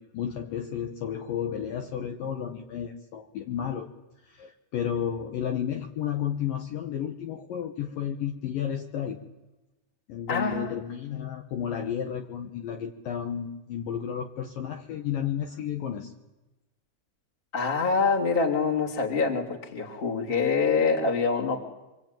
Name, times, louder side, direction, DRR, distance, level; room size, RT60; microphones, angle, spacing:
voice 1, 0.0-3.9 4.2-9.2 10.1-16.1, left 9 dB, 65° left, 5 dB, 2.4 m, -32 dB
voice 2, 10.3-10.7 17.5-21.6, left 4 dB, 15° left, 2 dB, 1.9 m, -25 dB
26.0 x 24.0 x 9.0 m, 1.0 s
omnidirectional pair, 5.1 m